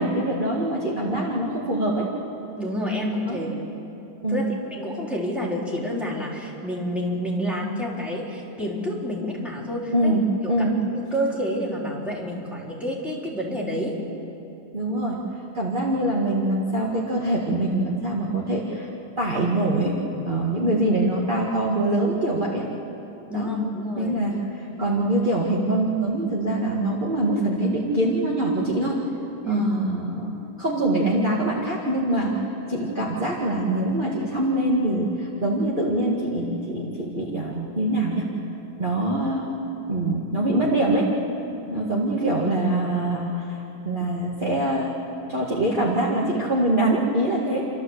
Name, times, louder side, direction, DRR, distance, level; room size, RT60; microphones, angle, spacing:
voice 1, 0.0-2.1 3.3-3.4 4.2-4.4 9.9-10.2 10.5-10.8 14.7-15.2 15.5-18.9 19.2-22.7 23.3-23.5 24.0-29.0 29.5-30.3 30.6-38.3 38.8-39.5 39.9-41.1 41.7-45.0 45.3-47.7, right 1 dB, 30° right, -4 dB, 2.1 m, -24 dB
voice 2, 2.6-3.5 4.3-10.1 10.6-10.7 10.9-14.0 23.3-24.4 29.4-29.7, equal, ahead, -4 dB, 3.7 m, -28 dB
29.0 x 13.0 x 8.1 m, 2.8 s
omnidirectional pair, 1.7 m